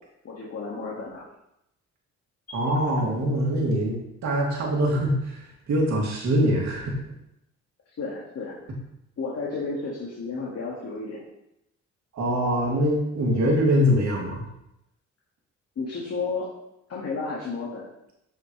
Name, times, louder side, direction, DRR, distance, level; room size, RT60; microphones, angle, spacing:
voice 1, 0.2-1.2 8.0-8.5 9.2-11.2 15.8-16.5 16.9-17.9, left 4 dB, 55° left, -5 dB, 2.1 m, -32 dB
voice 2, 2.5-6.9 12.1-14.4, equal, 65° right, -2 dB, 2.6 m, -23 dB
8.7 x 6.4 x 3.3 m, 0.82 s
cardioid pair, 90°, 30 cm